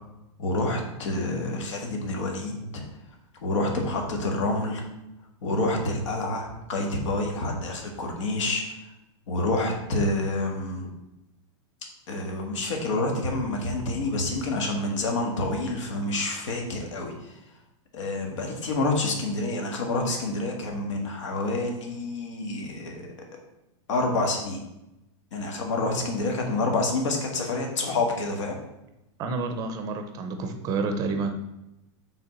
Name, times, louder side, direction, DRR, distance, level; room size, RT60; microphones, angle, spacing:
voice 1, 0.4-2.8 3.4-4.8 5.4-8.6 9.3-10.9 12.1-17.1 17.9-23.0 23.9-24.6 25.3-28.5, left 2 dB, 80° left, 1 dB, 1.7 m, -28 dB
voice 2, 29.2-31.3, right 4 dB, 25° right, 6 dB, 0.6 m, -29 dB
5.7 x 3.6 x 5.9 m, 0.92 s
supercardioid pair, 165°, 15 cm